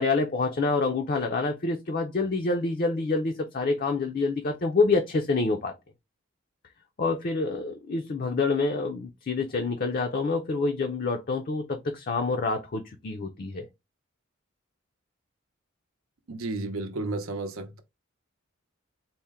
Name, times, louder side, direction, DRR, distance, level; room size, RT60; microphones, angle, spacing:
voice 1, 0.0-5.7 7.0-13.7, left 3 dB, 45° left, 0.4 m, -27 dB
voice 2, 16.3-17.8, right 2 dB, 90° right, 0.7 m, -32 dB
4.2 x 2.1 x 3.4 m
head